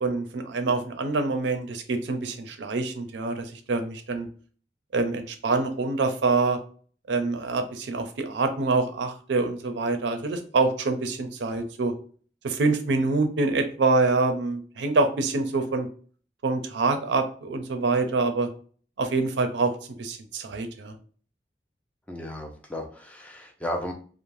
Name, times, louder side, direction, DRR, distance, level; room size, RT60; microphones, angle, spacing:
voice 1, 0.0-4.3 4.9-6.6 7.1-11.9 12.4-15.9 16.4-18.5 19.0-19.7 20.0-21.0, right 3 dB, 75° right, 7 dB, 0.5 m, -25 dB
voice 2, 22.1-23.9, left 1 dB, 10° left, 3 dB, 0.4 m, -34 dB
3.2 x 2.0 x 2.5 m, 0.43 s
head